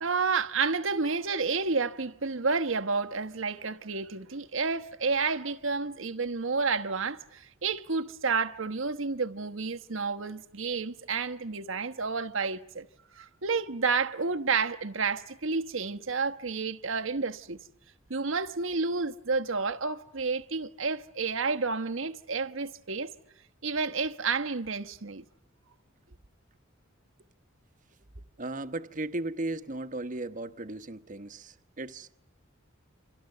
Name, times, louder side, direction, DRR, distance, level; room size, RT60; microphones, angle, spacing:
voice 1, 0.0-12.9 13.2-17.6 18.1-23.1 23.6-25.2, right 4 dB, 70° right, 1.1 m, -30 dB
voice 2, 28.4-32.2, right 2 dB, 40° right, 1.2 m, -36 dB
29.5 x 26.5 x 6.8 m
head